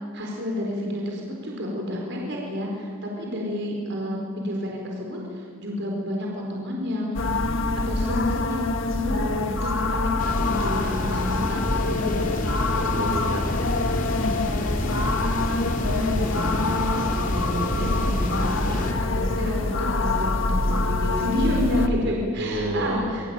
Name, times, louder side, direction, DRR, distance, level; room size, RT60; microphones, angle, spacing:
voice 1, 0.0-12.3 15.8-23.3, left 1 dB, 50° right, -1 dB, 4.5 m, -30 dB
sound 1, 7.1-21.9, left 2 dB, 60° left, 1.7 m, -25 dB
sound 2, 10.2-18.9, left 1 dB, 35° left, 3.0 m, -31 dB
voice 2, 12.7-13.5 14.0-14.3 18.7-19.0 22.4-23.1, right 1 dB, 75° right, 1 dB, 5.8 m, -30 dB
26.5 x 23.0 x 9.1 m, 2.1 s
head